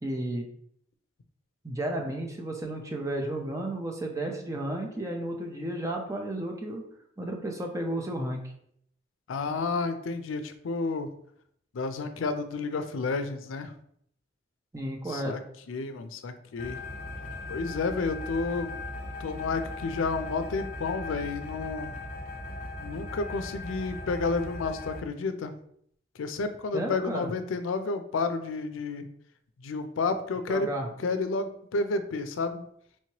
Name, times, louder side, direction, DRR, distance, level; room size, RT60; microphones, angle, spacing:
voice 1, 0.0-0.5 1.6-6.8 7.2-8.5 14.7-15.4 26.7-27.3 30.5-30.9, right 1 dB, 15° right, 2 dB, 0.5 m, -33 dB
voice 2, 9.3-11.1 11.7-13.7 15.1-15.4 15.7-16.8 17.5-18.7 19.2-22.0 22.8-25.5 26.2-29.1 29.6-30.7 31.0-32.7, left 3 dB, 90° left, 9 dB, 0.4 m, -31 dB
sound 1, 16.6-25.0, left 2 dB, 40° left, 0.7 m, -38 dB
4.4 x 3.0 x 2.8 m, 0.67 s
head